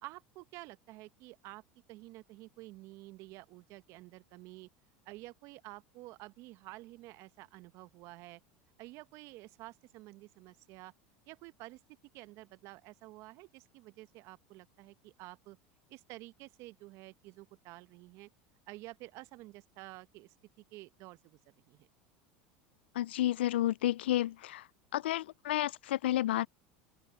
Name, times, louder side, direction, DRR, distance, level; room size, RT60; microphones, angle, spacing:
voice 1, 0.0-1.6 1.9-4.7 5.0-8.4 8.8-10.9 11.3-11.8 12.1-15.6 15.9-18.3 18.7-21.4 21.7-21.9, right 20 dB, 60° right, 1.0 m, -50 dB
voice 2, 22.9-24.7 24.9-26.5, left 14 dB, 80° left, 0.3 m, -31 dB
open air
hypercardioid pair, 90°, 6 cm